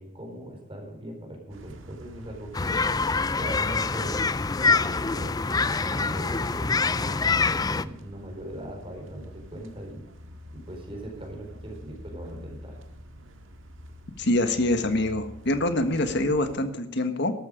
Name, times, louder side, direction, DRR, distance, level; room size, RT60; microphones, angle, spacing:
voice 1, 0.0-2.8 3.4-4.3 4.6-7.3 7.5-10.1 10.5-12.8, right 1 dB, 25° right, 1 dB, 4.4 m, -40 dB
sound 1, 1.5-16.6, equal, 70° right, 1.7 m, -47 dB
sound 2, 2.5-7.8, left 4 dB, 20° left, 0.4 m, -25 dB
voice 2, 14.2-17.3, left 1 dB, 55° left, 9 dB, 1.5 m, -25 dB
13.0 x 12.0 x 5.1 m, 0.86 s
head